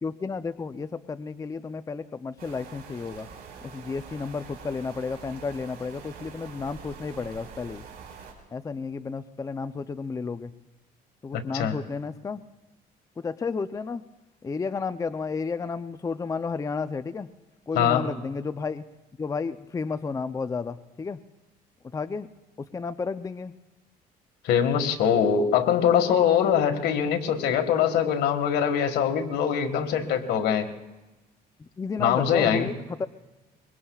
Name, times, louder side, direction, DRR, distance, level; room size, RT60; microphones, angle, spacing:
voice 1, 0.0-3.3 3.7-7.8 8.5-10.5 11.2-12.4 13.2-14.0 14.4-17.3 17.7-18.8 19.2-21.2 21.9-22.3 22.6-23.6 31.6-33.1, left 4 dB, 20° left, 10 dB, 0.5 m, -32 dB
sound 1, 2.4-8.3, right 6 dB, 70° right, 5.0 m, -45 dB
voice 2, 11.3-11.7 17.7-18.0 24.4-30.7 32.0-32.7, left 8 dB, 80° left, 5 dB, 1.8 m, -23 dB
24.0 x 23.0 x 2.4 m, 1.1 s
cardioid pair, 110°, 17 cm